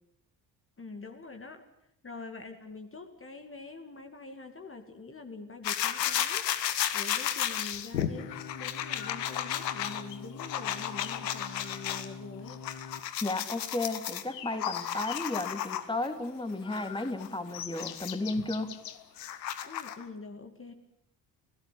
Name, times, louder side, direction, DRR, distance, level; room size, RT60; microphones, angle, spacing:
voice 1, 0.8-1.7 2.0-6.5 6.9-12.6 19.6-20.7, left 3 dB, 25° left, 6 dB, 2.4 m, -45 dB
sound 1, 5.6-12.1 12.5-16.1 16.7-20.0, left 11 dB, 80° left, 1.4 m, -34 dB
sound 2, 7.9-13.0, left 5 dB, 45° left, 1.8 m, -45 dB
voice 2, 13.2-18.7, left 2 dB, 10° left, 9 dB, 2.7 m, -33 dB
30.0 x 17.0 x 8.6 m, 0.75 s
figure-of-eight pair, 45°, 49 cm